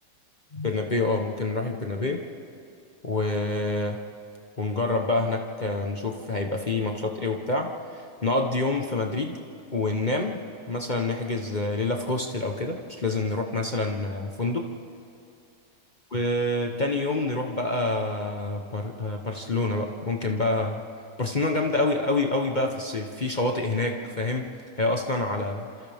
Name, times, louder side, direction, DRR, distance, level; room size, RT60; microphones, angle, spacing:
voice 1, 0.5-2.2 3.0-4.0 4.6-9.4 9.7-10.4 10.7-14.7 16.1-20.8 21.2-25.7, left 2 dB, 30° left, 2 dB, 1.0 m, -27 dB
28.5 x 27.0 x 3.6 m, 2.5 s
omnidirectional pair, 1.9 m